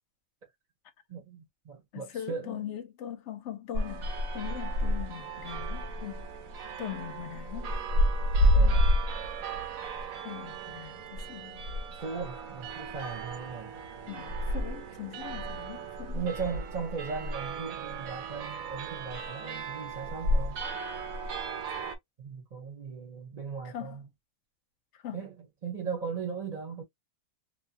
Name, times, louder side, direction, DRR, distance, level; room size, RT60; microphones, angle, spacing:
voice 1, 1.1-2.6 8.5-8.9 12.0-13.7 16.1-20.6 22.2-24.1 25.1-26.8, right 5 dB, 40° right, 0.7 m, -38 dB
voice 2, 1.9-6.3 6.8-7.7 10.2-11.6 14.1-16.2 23.6-24.0 24.9-25.3, left 11 dB, 70° left, 0.8 m, -41 dB
sound 1, 3.7-22.0, equal, 90° right, 1.1 m, -31 dB
2.8 x 2.2 x 2.7 m
omnidirectional pair, 1.4 m